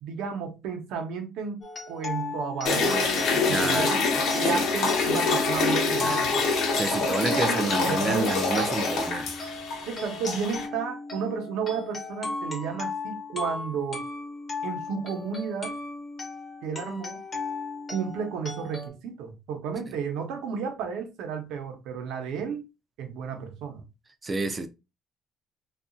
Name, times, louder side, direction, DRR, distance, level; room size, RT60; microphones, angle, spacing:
voice 1, 0.0-6.4 6.9-8.7 9.9-14.0 14.6-15.7 16.6-17.2 17.9-22.6 23.0-23.9, right 6 dB, 80° right, 0.7 m, -33 dB
sound 1, 1.6-18.9, left 3 dB, 25° left, 0.6 m, -36 dB
sound 2, 2.7-10.7, left 4 dB, 65° left, 0.7 m, -26 dB
voice 2, 3.4-4.0 4.5-4.6 6.0-6.2 6.8-9.3 24.2-24.7, right 2 dB, 20° right, 0.3 m, -29 dB
2.8 x 2.3 x 2.5 m
cardioid pair, 150°, 0 cm